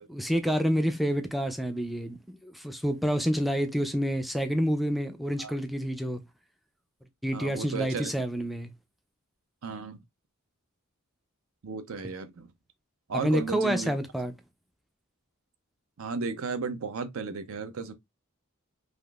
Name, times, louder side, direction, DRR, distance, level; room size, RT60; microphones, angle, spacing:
voice 1, 0.1-6.2 7.2-8.7 13.1-14.3, equal, ahead, 0.3 m, -28 dB
voice 2, 7.3-8.1 9.6-10.0 11.6-12.5 13.1-13.9 16.0-17.9, right 4 dB, 70° right, 0.5 m, -34 dB
3.5 x 2.5 x 2.3 m
head